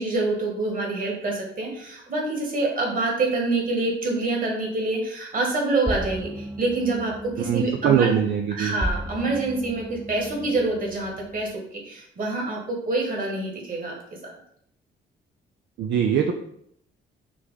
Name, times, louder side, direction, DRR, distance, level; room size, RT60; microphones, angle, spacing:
voice 1, 0.0-8.1 8.5-13.9, right 2 dB, 45° right, -1 dB, 1.8 m, -26 dB
sound 1, 5.9-11.5, right 1 dB, 5° right, 0.3 m, -35 dB
voice 2, 7.4-8.7 15.8-16.3, right 8 dB, 65° right, 3 dB, 0.5 m, -22 dB
5.9 x 2.2 x 4.0 m, 0.70 s
cardioid pair, 90°, 20 cm